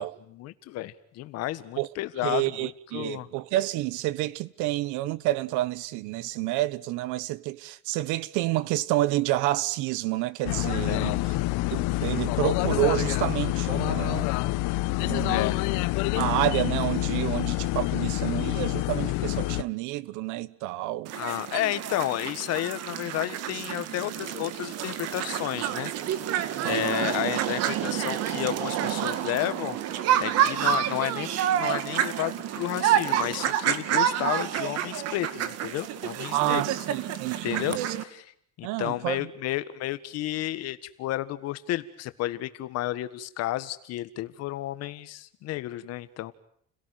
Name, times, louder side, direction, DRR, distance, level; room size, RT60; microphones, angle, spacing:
voice 1, 0.0-3.3 10.9-11.2 15.3-15.6 21.1-25.9 26.6-29.8 30.2-36.6 37.4-38.3 38.6-46.3, left 15 dB, 55° left, 1.7 m, -32 dB
voice 2, 2.2-11.2 11.7-14.3 15.0-15.6 16.1-21.1 26.6-27.1 36.3-37.9 38.6-39.3, right 16 dB, 90° right, 1.3 m, -29 dB
sound 1, 10.5-19.6, left 19 dB, 85° left, 1.0 m, -27 dB
sound 2, 21.1-38.0, right 10 dB, 55° right, 2.2 m, -28 dB
30.0 x 17.5 x 9.4 m
cardioid pair, 170°, 29 cm